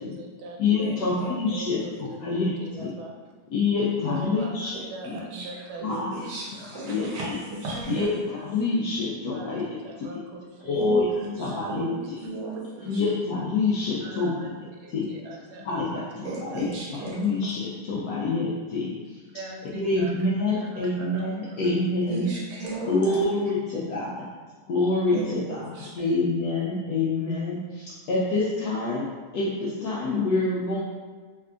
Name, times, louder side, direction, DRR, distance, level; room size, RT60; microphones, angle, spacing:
voice 1, 0.0-3.3 4.0-6.3 6.9-7.0 9.3-11.0 11.5-11.8 12.0-12.1 12.8-13.0 14.0-14.5 14.8-16.0 16.5-16.6 19.3-20.1 20.5-21.6 21.9-22.0 22.8-22.9, right 3 dB, 85° right, 0 dB, 1.4 m, -42 dB
voice 2, 0.6-2.9 3.5-4.7 5.8-6.1 6.8-7.4 7.9-9.6 10.1-10.2 10.6-11.1 11.4-12.2 12.8-14.3 14.9-15.1 15.6-18.9 19.6-22.3 22.8-24.3 24.7-30.8, left 3 dB, 80° left, -6 dB, 0.9 m, -26 dB
voice 3, 6.1-8.0 10.7-10.9 11.2-13.0 16.2-17.1 22.1-23.2 25.1-25.4 25.7-25.9, right 2 dB, 65° right, -6 dB, 1.4 m, -35 dB
sound 1, 7.7-8.2, left 1 dB, 20° right, 0.8 m, -41 dB
3.4 x 3.3 x 2.4 m, 1.4 s
omnidirectional pair, 2.2 m